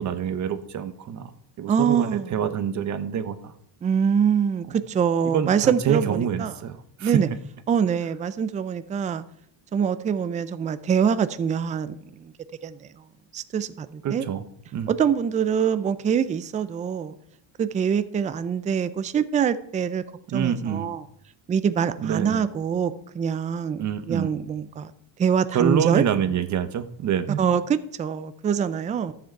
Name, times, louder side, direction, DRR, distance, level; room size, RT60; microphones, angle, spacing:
voice 1, 0.0-1.3 1.6-3.5 5.3-7.2 14.0-14.4 14.7-14.9 20.3-20.9 22.0-22.5 23.8-24.3 25.5-27.4, right 8 dB, 40° right, 11 dB, 0.9 m, -26 dB
voice 2, 1.7-2.4 3.8-6.5 7.0-7.3 7.7-9.2 9.7-12.3 12.6-13.0 13.3-14.3 14.9-17.1 17.6-20.0 20.3-21.0 21.5-24.9 25.2-26.0 27.4-29.1, right 7 dB, 20° right, 13 dB, 0.4 m, -24 dB
13.0 x 7.5 x 4.5 m, 0.72 s
cardioid pair, 145°, 45 cm